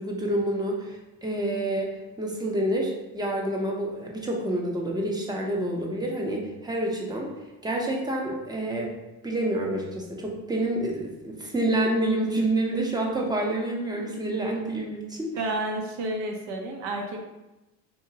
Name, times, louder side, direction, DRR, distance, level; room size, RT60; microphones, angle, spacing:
voice 1, 0.0-7.3 7.6-8.9 9.2-15.3, right 1 dB, 10° right, -1 dB, 0.7 m, -28 dB
voice 2, 15.4-17.2, right 2 dB, 70° right, 2 dB, 0.9 m, -30 dB
3.9 x 2.8 x 2.8 m, 1.0 s
supercardioid pair, 95°, 42 cm